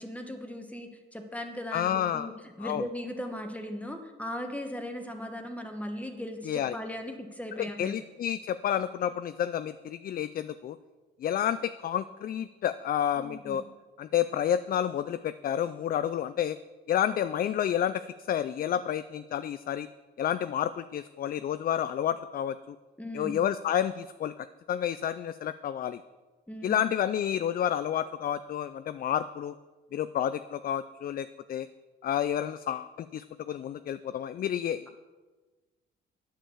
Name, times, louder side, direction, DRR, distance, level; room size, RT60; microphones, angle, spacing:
voice 1, 0.0-8.0 13.2-13.6 23.0-23.4 26.5-26.8, left 1 dB, 5° left, 4 dB, 1.3 m, -38 dB
voice 2, 1.7-2.3 2.6-2.8 6.5-6.7 7.6-10.8 11.2-13.6 14.0-16.6 16.9-19.9 20.2-22.8 23.1-26.0 26.6-29.5 29.9-31.7 32.0-35.0, left 10 dB, 50° left, 13 dB, 0.4 m, -30 dB
9.1 x 6.6 x 7.2 m, 1.3 s
cardioid pair, 90°, 20 cm